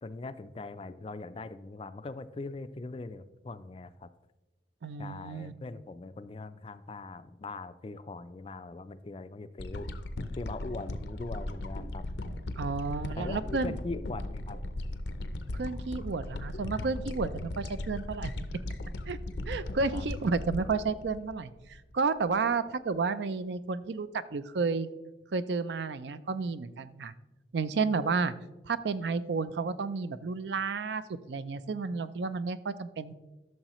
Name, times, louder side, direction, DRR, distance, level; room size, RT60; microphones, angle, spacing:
voice 1, 0.0-4.1 5.0-9.9 10.4-12.0 13.1-14.6 19.9-20.1, left 3 dB, 30° left, 13 dB, 0.3 m, -41 dB
voice 2, 4.8-5.5 12.6-13.7 15.5-18.3 19.1-19.2 19.5-21.5 21.9-24.9 25.3-27.1 27.5-28.3 28.7-33.1, right 4 dB, 75° right, 14 dB, 0.5 m, -31 dB
sound 1, 9.6-21.9 22.4-22.5, left 1 dB, 75° left, 0.6 m, -37 dB
13.0 x 6.4 x 3.0 m, 1.1 s
head